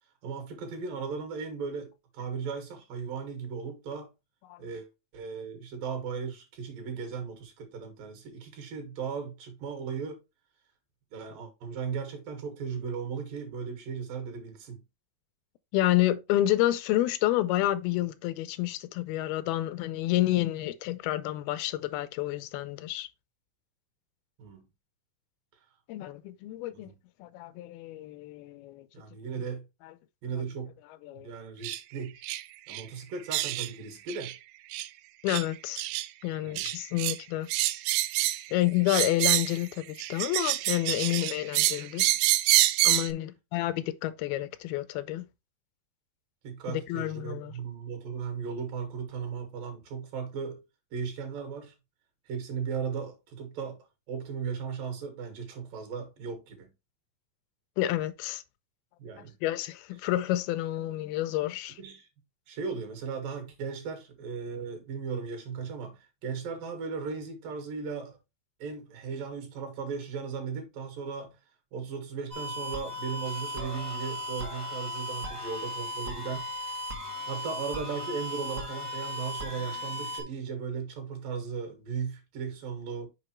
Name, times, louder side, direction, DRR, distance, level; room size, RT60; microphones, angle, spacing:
voice 1, 0.2-4.1 4.6-4.9 5.1-10.2 11.1-14.8 24.4-24.6 26.7-27.0 28.9-29.6 30.2-30.7 31.2-32.2 32.7-34.3 36.4-36.7 46.4-50.6 50.9-51.7 52.3-56.7 59.0-59.3 61.8-62.1 62.5-68.2 68.6-71.4 71.7-76.9 77.3-83.1, right 6 dB, 70° right, 3.1 m, -37 dB
voice 2, 15.7-23.1 25.9-26.9 27.2-28.9 29.8-29.9 31.0-31.3 35.2-35.8 36.2-37.5 38.5-42.1 42.8-45.3 46.7-47.5 57.8-58.4 59.4-61.8, left 15 dB, 85° left, 2.4 m, -29 dB
sound 1, 31.6-31.8 32.2-32.4 32.7-32.8 33.3-33.7 34.1-34.3 34.7-34.9 35.3-35.5 35.8-36.1 36.6-37.2 37.5-38.5 38.9-39.6 40.0-43.1, right 17 dB, 90° right, 2.5 m, -27 dB
sound 2, 72.3-80.2, left 1 dB, 50° right, 0.9 m, -36 dB
6.8 x 5.2 x 3.1 m
omnidirectional pair, 4.3 m